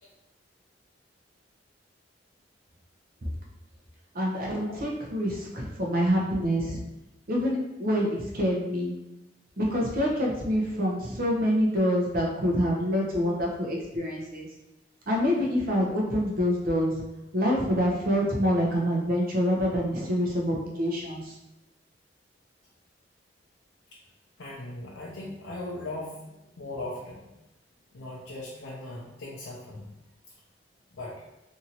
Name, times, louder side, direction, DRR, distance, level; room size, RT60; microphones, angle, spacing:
voice 1, 4.1-6.8 7.3-8.9 9.6-14.5 15.1-17.0 17.3-21.3, equal, 50° right, -2 dB, 0.7 m, -26 dB
voice 2, 24.4-27.3 27.9-29.9 30.9-31.2, left 2 dB, 75° left, -5 dB, 0.5 m, -39 dB
2.8 x 2.5 x 2.8 m, 0.93 s
head